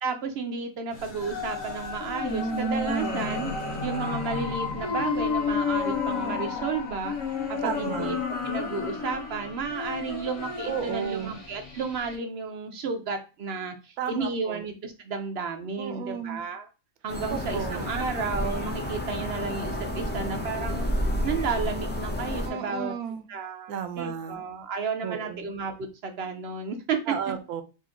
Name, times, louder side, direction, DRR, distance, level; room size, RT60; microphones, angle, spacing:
voice 1, 0.0-3.5 3.8-7.2 7.5-8.2 8.4-16.7 17.0-20.9 21.2-22.9 23.3-27.0, right 4 dB, 65° right, 6 dB, 0.6 m, -32 dB
sound 1, 0.9-12.1, left 3 dB, 90° left, 1.5 m, -32 dB
sound 2, 1.2-8.0, left 5 dB, 50° left, 0.8 m, -36 dB
voice 2, 7.6-8.2 10.6-11.4 14.0-14.7 15.8-16.4 17.3-17.8 22.5-23.3 23.7-24.4 25.0-25.5 27.1-27.6, right 7 dB, 80° right, 9 dB, 1.1 m, -33 dB
sound 3, 17.1-22.5, equal, 15° left, 0.3 m, -30 dB
4.0 x 2.5 x 3.7 m, 0.31 s
omnidirectional pair, 1.6 m